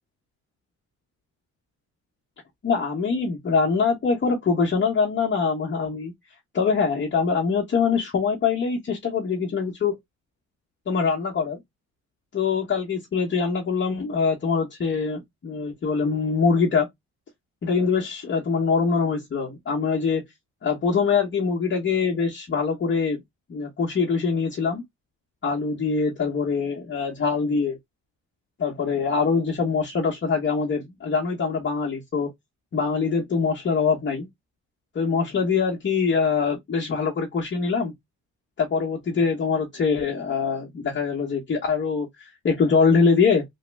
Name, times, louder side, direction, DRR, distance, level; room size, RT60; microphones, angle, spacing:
voice 1, 2.6-6.1 6.5-10.0 10.9-11.6 12.3-16.9 17.6-20.2 20.6-23.2 23.5-24.8 25.4-27.8 28.6-32.3 32.7-34.3 34.9-37.9 38.6-43.4, left 5 dB, 40° left, 1.0 m, -23 dB
3.0 x 2.2 x 3.3 m
cardioid pair, 90°, 30 cm